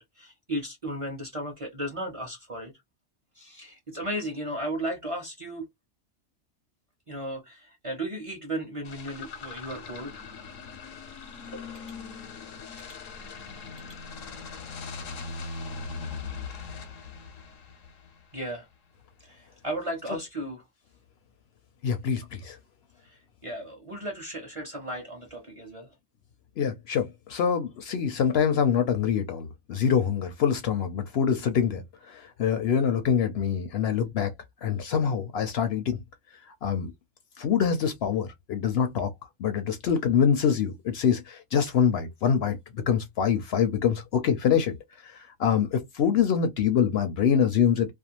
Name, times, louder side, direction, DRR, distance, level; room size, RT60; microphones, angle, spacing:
voice 1, 0.0-2.7 3.4-5.7 7.1-10.2 11.4-11.8 18.3-18.7 19.2-20.6 23.0-25.9, right 1 dB, 35° right, 0.6 m, -35 dB
sound 1, 8.8-18.4, left 4 dB, 85° left, 1.1 m, -40 dB
voice 2, 21.8-22.6 26.6-34.3 34.6-36.0 36.6-36.9 37.4-39.1 39.4-44.8 45.0-47.9, left 7 dB, 65° left, 0.7 m, -25 dB
2.4 x 2.2 x 2.8 m
omnidirectional pair, 1.3 m